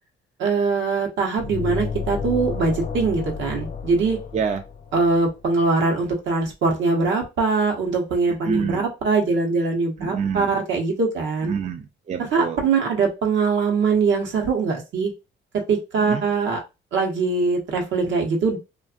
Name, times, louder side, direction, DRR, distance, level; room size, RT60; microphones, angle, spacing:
voice 1, 0.4-4.2 4.9-11.5 12.3-15.1 15.7-16.6 16.9-18.6, right 4 dB, 75° right, 1 dB, 1.0 m, -22 dB
sound 1, 1.4-5.2, left 6 dB, 60° left, 0.7 m, -31 dB
voice 2, 8.4-8.9 10.0-10.5 11.4-12.6 16.0-16.2, right 6 dB, 35° right, 5 dB, 0.4 m, -27 dB
2.5 x 2.5 x 2.4 m, 0.27 s
cardioid pair, 90°, 20 cm